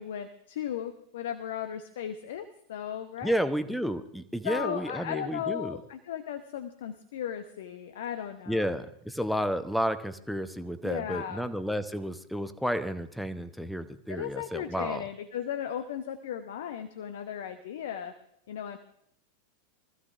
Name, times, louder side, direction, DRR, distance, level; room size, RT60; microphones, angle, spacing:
voice 1, 0.0-3.5 4.4-8.7 10.8-11.5 14.1-18.1 18.5-18.8, left 9 dB, 55° left, 9 dB, 0.8 m, -36 dB
voice 2, 3.2-5.8 8.5-15.0, equal, ahead, 11 dB, 0.8 m, -31 dB
24.0 x 14.5 x 2.5 m, 0.73 s
figure-of-eight pair, 90°, 0 cm